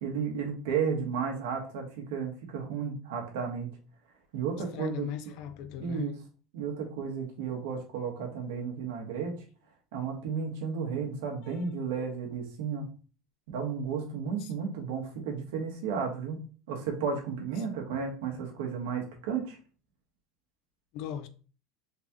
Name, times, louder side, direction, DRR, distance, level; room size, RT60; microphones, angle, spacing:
voice 1, 0.0-3.7 4.3-5.1 5.8-6.1 6.5-9.3 9.9-12.9 13.5-16.4 16.7-19.6, right 6 dB, 85° right, 1.4 m, -33 dB
voice 2, 4.7-6.1 11.4-11.7 14.4-14.5 17.6-17.7 20.9-21.3, left 9 dB, 50° left, 0.4 m, -39 dB
4.0 x 3.6 x 2.9 m
cardioid pair, 175°, 0 cm